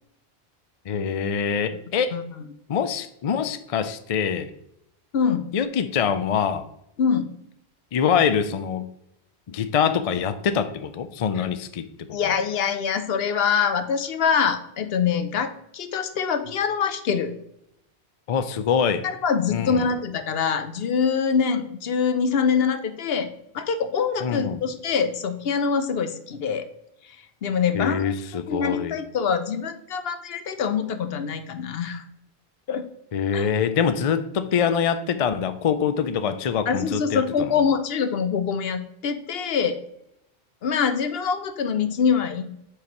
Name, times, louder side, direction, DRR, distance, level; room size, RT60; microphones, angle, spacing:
voice 1, 0.9-2.2 2.7-4.5 5.5-6.6 7.9-8.9 9.5-12.4 18.3-19.1 19.5-19.9 24.2-24.6 27.7-29.0 33.1-37.2, left 7 dB, 50° left, 10 dB, 0.4 m, -24 dB
voice 2, 5.1-5.5 7.0-7.3 11.4-11.5 12.1-17.4 19.0-26.7 27.4-28.1 28.5-32.0 32.7-32.9 33.3-33.4 36.7-39.8 40.6-42.6, left 6 dB, 65° left, 10 dB, 0.9 m, -24 dB
8.3 x 4.8 x 3.0 m, 0.80 s
omnidirectional pair, 1.1 m